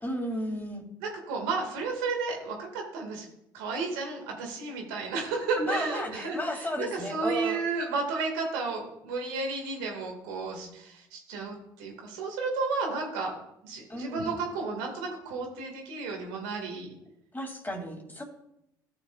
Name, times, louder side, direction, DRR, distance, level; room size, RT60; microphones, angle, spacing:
voice 1, 0.0-0.9 5.6-7.6 13.9-14.5 17.3-18.2, equal, 20° left, 2 dB, 2.8 m, -33 dB
voice 2, 1.0-3.3 3.5-13.3 13.6-17.0, right 4 dB, 85° right, 1 dB, 2.1 m, -33 dB
14.5 x 6.7 x 2.5 m, 0.80 s
hypercardioid pair, 60°, 10 cm